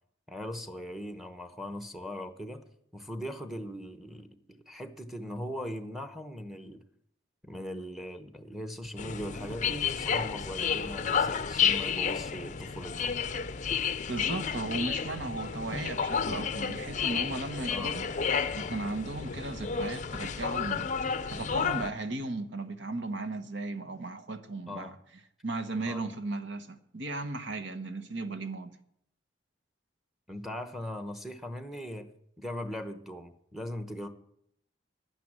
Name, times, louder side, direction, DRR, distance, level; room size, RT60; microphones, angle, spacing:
voice 1, 0.3-2.6 2.9-6.8 7.4-13.1 13.7-13.8 17.7-18.0 24.7-25.0 25.9-26.0 30.3-32.1 32.4-34.1, equal, ahead, 0.9 m, -39 dB
sound 1, 9.0-21.9, left 6 dB, 35° left, 0.5 m, -31 dB
voice 2, 14.1-18.1 18.5-24.9 25.4-28.7, right 2 dB, 65° right, 1.1 m, -36 dB
10.5 x 9.3 x 8.8 m
head